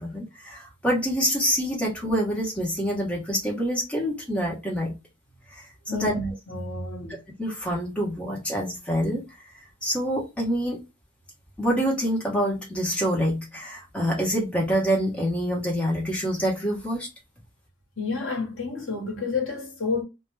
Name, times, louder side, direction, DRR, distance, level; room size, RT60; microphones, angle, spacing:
voice 1, 0.0-4.9 5.5-5.6 5.9-6.1 7.4-9.2 9.8-10.8 11.6-17.1, equal, 5° left, 0.8 m, -26 dB
voice 2, 5.9-7.2 18.0-20.0, left 3 dB, 80° left, 1.0 m, -30 dB
2.2 x 2.1 x 3.1 m
head